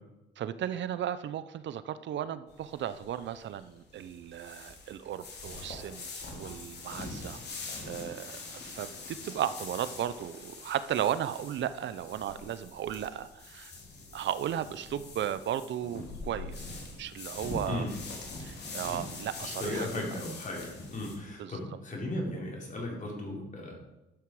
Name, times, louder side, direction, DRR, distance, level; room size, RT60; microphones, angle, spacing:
voice 1, 0.4-7.4 7.8-13.7 14.1-17.9 18.4-19.9 21.4-21.8, right 10 dB, 65° right, 13 dB, 0.6 m, -35 dB
sound 1, 2.5-21.1, left 3 dB, 55° left, 3.1 m, -43 dB
voice 2, 19.4-23.8, left 1 dB, 40° left, -1 dB, 4.2 m, -36 dB
12.0 x 7.6 x 4.8 m, 1.0 s
cardioid pair, 90°, 20 cm